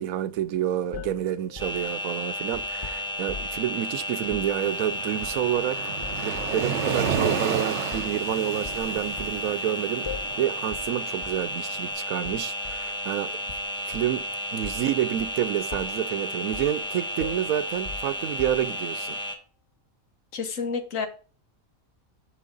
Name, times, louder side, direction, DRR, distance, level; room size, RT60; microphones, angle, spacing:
voice 1, 0.0-5.9 6.2-10.1 10.4-13.4 13.9-14.3 14.5-19.2, right 11 dB, 85° right, 1.1 m, -28 dB
sound 1, 0.9-3.7 4.2-4.6 5.2-5.6 6.0-6.6 7.1-7.3 7.9-8.2 8.6-9.4 10.0-10.4 10.7-10.9 11.2-11.5 12.2-12.9 13.5-14.2 14.6-14.9 15.2-15.4 15.7-16.1 16.5-16.8 17.2-18.9, left 4 dB, 35° left, 0.4 m, -40 dB
sound 2, 1.6-19.4, left 1 dB, 5° left, 1.1 m, -33 dB
Waves surf, 4.7-11.8, right 6 dB, 60° right, 1.0 m, -32 dB
voice 2, 20.3-21.1, left 5 dB, 70° left, 1.6 m, -29 dB
6.5 x 6.4 x 3.9 m
omnidirectional pair, 1.4 m